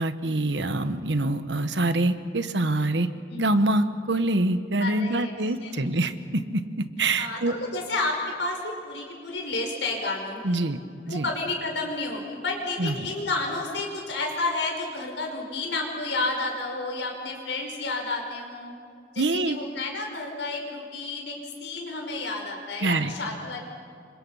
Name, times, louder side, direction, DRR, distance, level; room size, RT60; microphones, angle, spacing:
voice 1, 0.0-3.1 3.4-7.5 10.4-10.8 11.1-11.3 12.8-13.1 19.2-19.6 22.8-23.1, right 2 dB, 70° right, 11 dB, 1.3 m, -25 dB
voice 2, 3.3-3.8 4.8-5.9 7.2-10.6 11.1-18.7 19.1-23.6, left 2 dB, 75° left, 1 dB, 5.4 m, -31 dB
28.5 x 25.5 x 5.7 m, 2.4 s
head